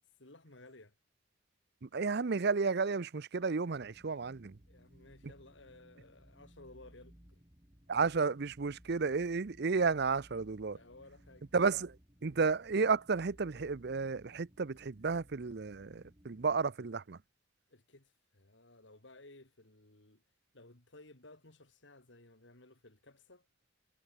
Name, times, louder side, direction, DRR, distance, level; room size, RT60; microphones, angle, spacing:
voice 1, 0.2-0.9 4.7-7.4 10.7-11.5 17.7-20.2 20.5-23.5, left 2 dB, 65° left, 3.1 m, -57 dB
voice 2, 1.8-4.6 7.9-10.8 11.5-12.0 12.2-17.2, right 4 dB, 55° right, 0.6 m, -32 dB
sound 1, 3.7-16.7, equal, 20° right, 2.9 m, -61 dB
head